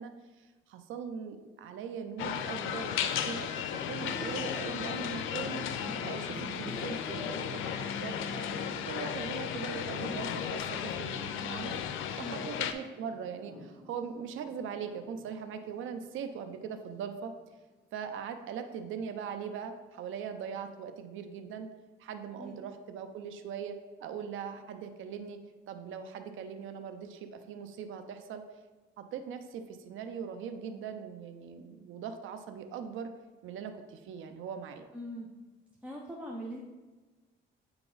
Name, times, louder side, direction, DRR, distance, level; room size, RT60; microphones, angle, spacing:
voice 1, 0.0-5.7 6.0-11.8 12.2-17.3 17.9-21.7 22.0-25.4 25.7-28.4 29.0-33.1 33.4-34.9, right 7 dB, 80° right, 8 dB, 0.6 m, -41 dB
sound 1, 2.2-12.7, left 9 dB, 85° left, 0.4 m, -35 dB
Thunder, 3.6-12.4 12.6-16.9 17.2-17.4 18.5-19.2, right 1 dB, 15° left, 2.0 m, -49 dB
voice 2, 34.9-35.3 35.8-36.6, equal, 5° right, -2 dB, 0.8 m, -41 dB
8.6 x 3.0 x 3.9 m, 1.2 s
cardioid pair, 90°, 20 cm